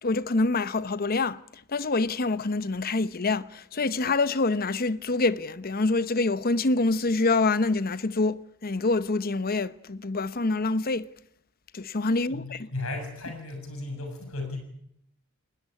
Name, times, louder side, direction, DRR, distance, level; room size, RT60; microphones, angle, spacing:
voice 1, 0.0-1.4 1.7-11.1 11.7-12.7, left 3 dB, 45° left, 0.9 m, -26 dB
voice 2, 12.3-14.6, left 2 dB, 85° left, 7.1 m, -35 dB
21.0 x 19.5 x 9.8 m
head